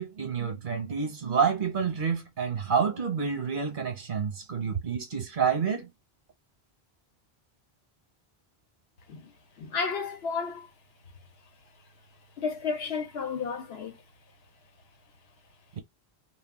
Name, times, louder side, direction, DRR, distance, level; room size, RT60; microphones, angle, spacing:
voice 1, 0.0-5.9, right 6 dB, 50° right, 1.0 m, -28 dB
voice 2, 9.6-10.7 12.4-14.0, left 5 dB, 75° left, 0.9 m, -32 dB
2.3 x 2.3 x 3.5 m
omnidirectional pair, 1.1 m